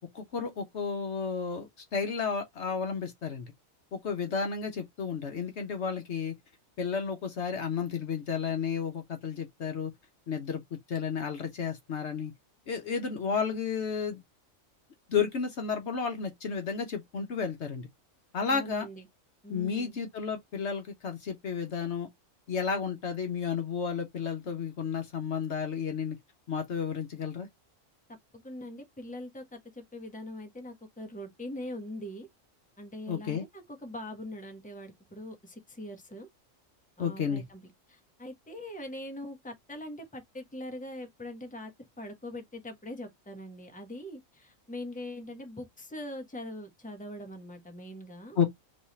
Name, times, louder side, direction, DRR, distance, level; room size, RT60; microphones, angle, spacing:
voice 1, 0.1-3.5 3.9-6.3 6.8-9.9 10.3-10.6 10.9-12.3 12.7-14.2 15.1-17.9 18.3-18.9 19.5-22.1 22.5-26.2 26.5-27.5 33.1-33.4 37.0-37.4 48.4-48.5, left 6 dB, 60° left, 1.1 m, -32 dB
voice 2, 18.5-19.1 19.4-20.0 28.3-32.3 32.8-36.3 37.0-41.7 42.0-48.4, left 1 dB, 5° left, 1.1 m, -42 dB
3.5 x 3.2 x 4.0 m
omnidirectional pair, 1.4 m